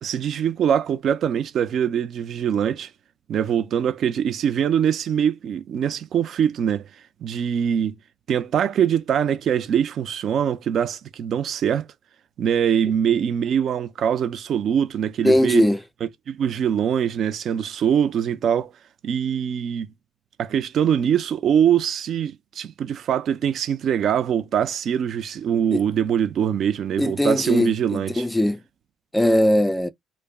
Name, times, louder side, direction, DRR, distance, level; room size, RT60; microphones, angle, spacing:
voice 1, 0.0-2.9 3.3-6.9 7.2-7.9 8.3-11.9 12.4-15.6 16.3-18.7 19.0-19.9 20.4-28.2, right 8 dB, 55° right, 0.4 m, -23 dB
voice 2, 15.2-15.8 25.7-25.8 27.0-28.6 29.1-29.9, left 1 dB, 10° left, 0.3 m, -20 dB
2.2 x 2.0 x 3.3 m
supercardioid pair, 90°, 0 cm